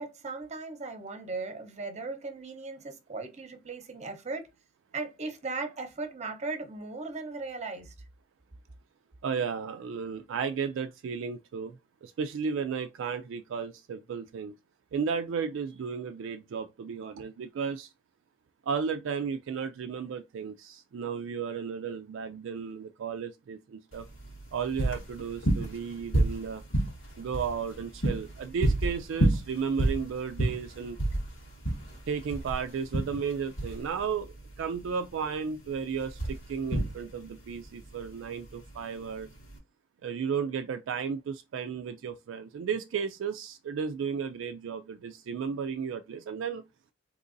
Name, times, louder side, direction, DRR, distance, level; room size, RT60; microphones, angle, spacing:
voice 1, 0.0-4.5 4.9-7.9, right 3 dB, 35° right, 0.8 m, -37 dB
voice 2, 9.2-11.7 12.0-14.5 14.9-17.9 18.7-24.1 24.5-26.6 27.2-31.0 32.1-39.3 40.0-46.6, right 6 dB, 70° right, 0.3 m, -34 dB
sound 1, 23.9-39.6, right 1 dB, 75° left, 1.7 m, -31 dB
3.8 x 2.9 x 2.5 m
head